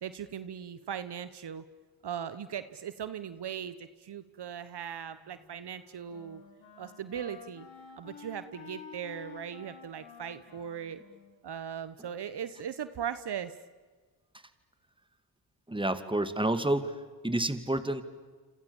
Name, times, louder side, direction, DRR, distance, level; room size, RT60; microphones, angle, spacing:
voice 1, 0.0-1.6 2.0-6.4 6.8-7.7 8.0-11.0 11.4-13.5, right 8 dB, 60° right, 13 dB, 1.2 m, -39 dB
Wind instrument woodwind instrument, 5.1-12.3, left 6 dB, 85° left, 4.0 m, -52 dB
voice 2, 15.7-16.9 17.2-18.0, right 1 dB, 10° right, 11 dB, 2.5 m, -29 dB
28.5 x 26.5 x 7.2 m, 1.4 s
supercardioid pair, 55°, 45 cm